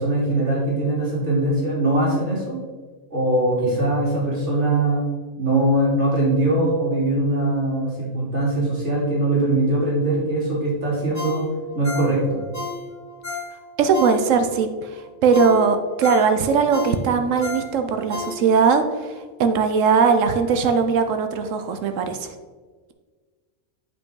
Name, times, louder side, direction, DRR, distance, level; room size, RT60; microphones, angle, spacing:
voice 1, 0.0-2.6 3.1-5.0 5.4-11.5 11.7-12.4, right 2 dB, 65° right, -5 dB, 2.8 m, -21 dB
Ringtone, 11.1-14.6 15.0-15.1 15.3-18.8 19.2-19.3, left 3 dB, 75° left, 2.0 m, -33 dB
voice 2, 13.8-14.9 15.2-19.1 19.4-22.3, right 5 dB, 80° right, 7 dB, 1.0 m, -19 dB
8.1 x 5.3 x 3.8 m, 1.4 s
omnidirectional pair, 1.3 m